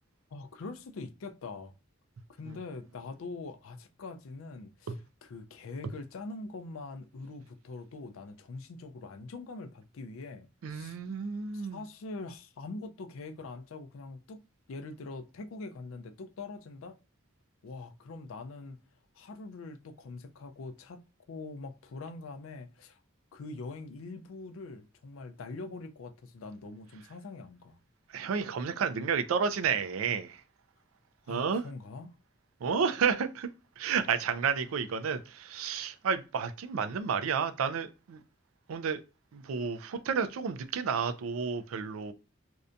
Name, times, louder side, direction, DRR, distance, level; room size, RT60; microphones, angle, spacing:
voice 1, 0.3-1.7 2.4-5.0 5.2-11.0 11.5-14.4 14.7-17.0 17.6-18.8 19.1-21.0 21.3-23.0 23.3-27.8 31.3-32.1, left 3 dB, 80° left, 0.4 m, -43 dB
voice 2, 10.6-11.8 28.1-30.4 31.3-31.6 32.6-33.5 33.8-38.2 38.7-39.0 39.3-42.1, right 6 dB, 90° right, 0.4 m, -31 dB
2.6 x 2.2 x 2.4 m
head